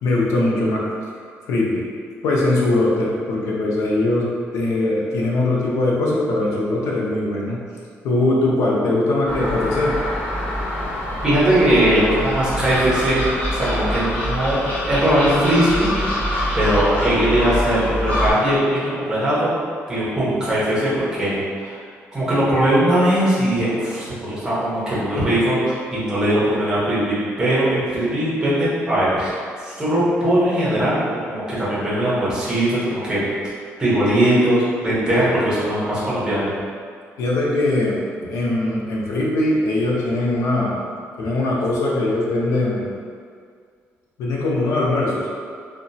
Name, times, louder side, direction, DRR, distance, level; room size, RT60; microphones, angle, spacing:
voice 1, 0.0-0.9 1.4-1.9 2.2-7.6 8.0-10.0 37.2-40.8 41.2-42.9 44.2-45.3, left 2 dB, 90° left, -3 dB, 0.5 m, -21 dB
Gull seagull, 9.2-18.3, left 1 dB, 35° left, 0.7 m, -25 dB
voice 2, 11.2-13.2 13.5-16.1 16.5-19.5 19.9-21.8 22.1-29.3 29.6-33.2 33.8-36.5, right 1 dB, 15° right, -9 dB, 0.8 m, -20 dB
2.8 x 2.2 x 2.6 m, 2.1 s
cardioid pair, 170°, 5 cm